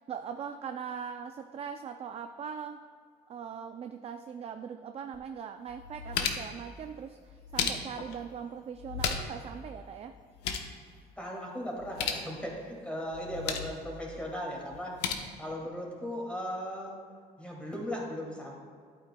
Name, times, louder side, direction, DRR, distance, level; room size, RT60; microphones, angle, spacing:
voice 1, 0.0-2.8 3.3-10.2, right 7 dB, 35° right, 7 dB, 0.4 m, -40 dB
sound 1, 5.1-5.2 5.7-6.6 7.3-8.1 8.8-9.5 9.7-9.8 10.2-10.7 11.8-12.3 13.1-13.8 14.7-15.1, left 7 dB, 90° left, 0.8 m, -34 dB
voice 2, 11.2-16.9 17.4-18.6, equal, 5° left, -3 dB, 2.3 m, -37 dB
11.5 x 8.8 x 2.3 m, 2.1 s
cardioid pair, 110°, 17 cm